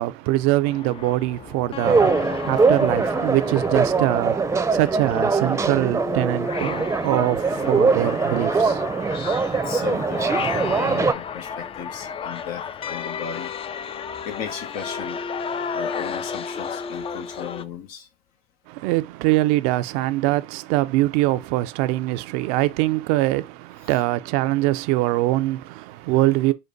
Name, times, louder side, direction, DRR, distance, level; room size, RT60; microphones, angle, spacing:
voice 1, 0.0-8.8 18.7-26.5, right 17 dB, 85° right, 0.4 m, -23 dB
sound 1, 0.6-17.6, left 6 dB, 40° left, 0.4 m, -33 dB
sound 2, 1.8-11.1, right 4 dB, 20° right, 0.5 m, -22 dB
voice 2, 9.5-13.5 14.2-15.2 15.7-18.1 23.8-23.9, left 7 dB, 80° left, 0.9 m, -36 dB
5.1 x 2.2 x 3.8 m
supercardioid pair, 80°, 14 cm